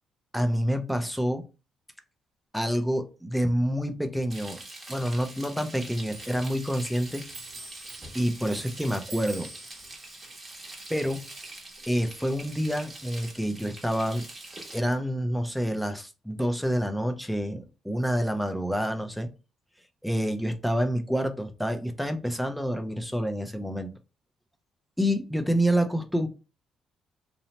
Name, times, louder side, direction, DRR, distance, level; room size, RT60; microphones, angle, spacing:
voice 1, 0.3-1.5 2.5-4.6 4.9-7.2 8.1-9.5 10.9-11.3 11.9-14.2 14.7-19.3 20.0-23.9 25.0-26.3, equal, ahead, 0.4 m, -28 dB
Frying (food), 4.3-14.8, right 2 dB, 25° right, 0.9 m, -44 dB
Clock, 6.1-13.1 13.4-14.7 15.0-15.8, right 3 dB, 70° right, 0.8 m, -49 dB
2.8 x 2.0 x 2.8 m
cardioid pair, 90°, 0 cm